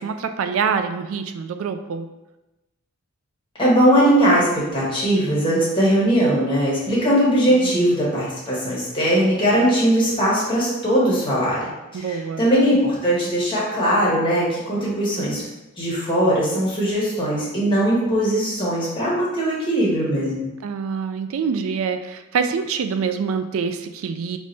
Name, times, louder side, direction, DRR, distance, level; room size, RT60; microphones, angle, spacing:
voice 1, 0.0-2.1 7.5-7.9 11.9-12.5 20.6-24.4, right 6 dB, 70° right, 8 dB, 0.4 m, -25 dB
voice 2, 3.6-11.7 11.9-15.4 15.8-20.5, right 1 dB, 25° left, -7 dB, 1.4 m, -20 dB
5.1 x 3.2 x 2.7 m, 1.0 s
head